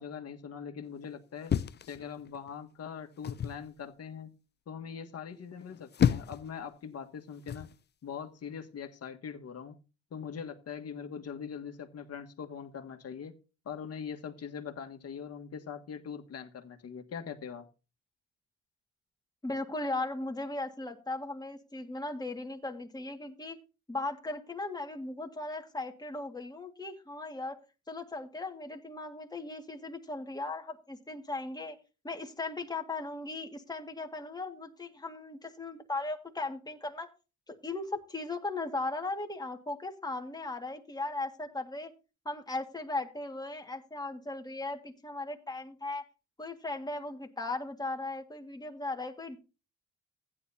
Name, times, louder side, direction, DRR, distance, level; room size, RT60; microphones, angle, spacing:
voice 1, 0.0-1.5 1.9-4.3 4.7-7.7 8.0-9.7 10.1-13.3 13.6-17.7, left 7 dB, 55° left, 4 dB, 1.6 m, -42 dB
sound 1, 1.5-2.5 3.2-3.6 5.6-6.5 7.5-7.8, left 8 dB, 35° left, 0.5 m, -30 dB
voice 2, 19.4-23.6 23.9-27.6 27.9-31.8 32.0-37.1 37.5-41.9 42.3-46.0 46.4-49.4, left 2 dB, 15° left, 4 dB, 1.9 m, -37 dB
15.0 x 10.0 x 2.8 m, 0.32 s
cardioid pair, 90°, 30 cm